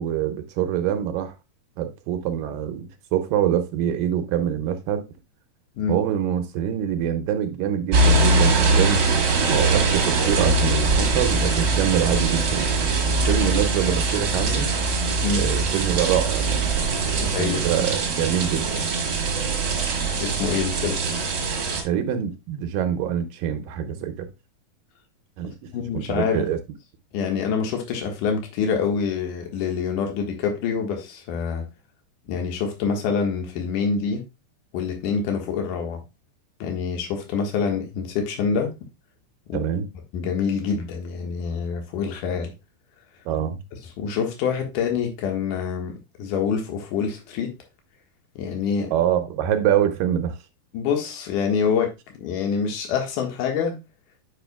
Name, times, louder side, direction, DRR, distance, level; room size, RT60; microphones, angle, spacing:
voice 1, 0.0-1.3 1.8-5.1 5.9-9.0 9.5-12.8 13.3-14.7 15.3-16.6 17.1-18.8 21.8-24.3 25.4-26.6 39.5-39.9 43.3-43.6 48.9-50.4, right 9 dB, 80° right, 2.3 m, -25 dB
sound 1, 7.9-21.8, right 3 dB, 45° right, 1.5 m, -22 dB
voice 2, 17.2-17.9 20.2-21.0 25.7-26.5 27.1-31.6 32.3-34.2 34.7-36.0 36.6-38.7 39.5-39.6 40.1-42.5 44.0-47.5 48.4-48.9 50.7-51.9 52.2-53.8, left 6 dB, 65° left, 2.7 m, -26 dB
8.6 x 5.5 x 2.2 m
omnidirectional pair, 4.2 m